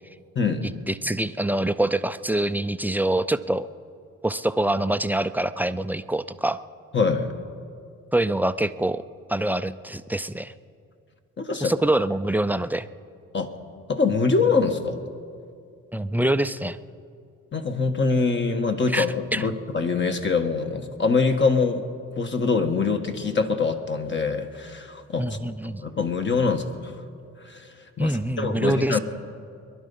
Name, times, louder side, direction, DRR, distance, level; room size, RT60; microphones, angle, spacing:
voice 1, 0.3-0.7 6.9-7.3 11.4-11.7 13.3-13.5 13.9-15.0 17.5-21.9 22.2-25.4 25.8-26.9 27.4-29.0, left 4 dB, 40° left, 6 dB, 1.3 m, -24 dB
voice 2, 0.9-3.7 4.2-6.6 8.1-9.0 9.3-10.5 11.6-12.9 15.9-16.8 18.9-19.1 19.3-19.5 25.2-25.8 28.0-29.0, right 1 dB, 5° right, 12 dB, 0.4 m, -25 dB
22.0 x 11.5 x 5.4 m, 2.4 s
cardioid pair, 90°, 30 cm